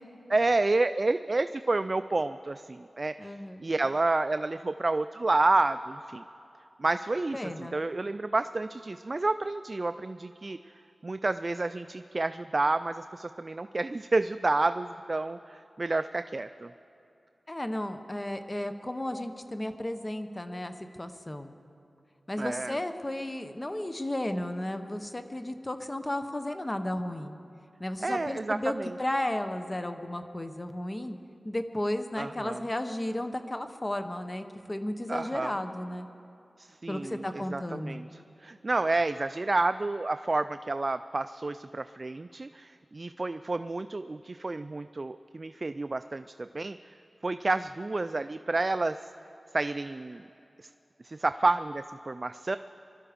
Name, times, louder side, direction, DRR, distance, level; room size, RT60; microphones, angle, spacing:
voice 1, 0.3-3.3 3.6-6.2 6.8-10.6 11.0-16.7 22.4-22.8 28.0-28.9 32.2-32.6 35.1-35.6 36.6-46.8 47.2-49.0 49.5-50.2 50.6-50.7 51.0-52.6, right 2 dB, 45° right, 11 dB, 0.3 m, -29 dB
voice 2, 3.2-3.6 7.3-7.8 17.5-21.5 22.3-27.4 27.8-28.7 29.0-31.2 31.4-36.1 36.9-38.0, left 1 dB, 25° left, 8 dB, 0.9 m, -34 dB
22.0 x 12.0 x 5.1 m, 2.7 s
wide cardioid pair, 60°, 0 cm